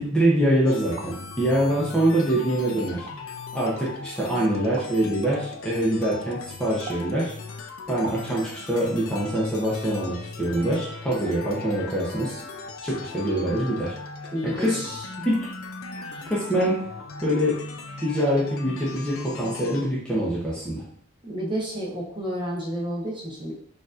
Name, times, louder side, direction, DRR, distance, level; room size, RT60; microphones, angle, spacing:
voice 1, 0.0-3.1 3.5-7.3 7.9-12.4 12.8-13.9 14.4-14.8 15.2-15.5 16.3-16.9 17.2-17.6 18.0-20.8, right 1 dB, 5° left, -7 dB, 0.7 m, -24 dB
sound 1, 0.7-19.8, left 4 dB, 75° left, 0.4 m, -39 dB
sound 2, 1.0-1.1 2.0-2.1 2.9-3.2 4.8-4.9 6.9-7.1 8.0-8.3 9.1-9.3 10.6-10.7 11.3-11.4 11.7-11.8, right 3 dB, 45° right, 0.3 m, -39 dB
voice 2, 14.3-14.9 16.0-16.1 21.2-23.5, equal, 25° right, -4 dB, 0.9 m, -30 dB
4.4 x 2.5 x 2.5 m, 0.63 s
head